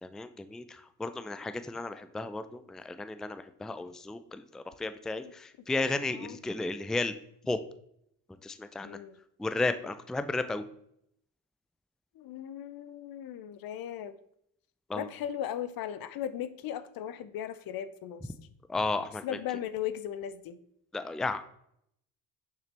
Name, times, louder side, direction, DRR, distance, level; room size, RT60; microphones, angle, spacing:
voice 1, 0.0-7.1 7.5-7.6 8.4-9.0 9.4-10.6 14.9-15.1 18.7-19.2 20.9-21.4, left 3 dB, ahead, 11 dB, 0.4 m, -33 dB
voice 2, 6.1-6.4 8.8-9.2 12.2-14.2 14.9-18.3 19.2-20.6, left 10 dB, 60° left, 13 dB, 0.7 m, -37 dB
6.8 x 5.8 x 3.4 m, 0.72 s
supercardioid pair, 60°, 40 cm